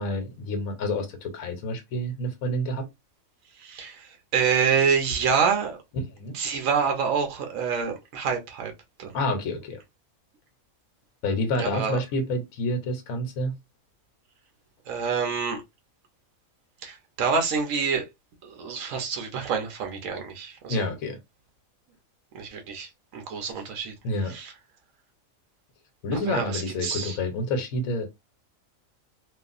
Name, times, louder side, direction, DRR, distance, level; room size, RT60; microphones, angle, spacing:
voice 1, 0.0-2.9 6.1-6.4 9.1-9.8 11.2-13.6 20.7-21.2 24.0-24.3 26.0-28.1, left 1 dB, 80° left, 1.2 m, -28 dB
voice 2, 3.6-5.8 6.3-8.7 9.0-9.2 11.6-12.0 14.9-15.6 16.8-18.0 18.4-20.9 22.3-23.9 24.3-24.5 26.1-27.2, right 6 dB, 70° right, 1.2 m, -27 dB
3.1 x 2.4 x 2.4 m
omnidirectional pair, 1.5 m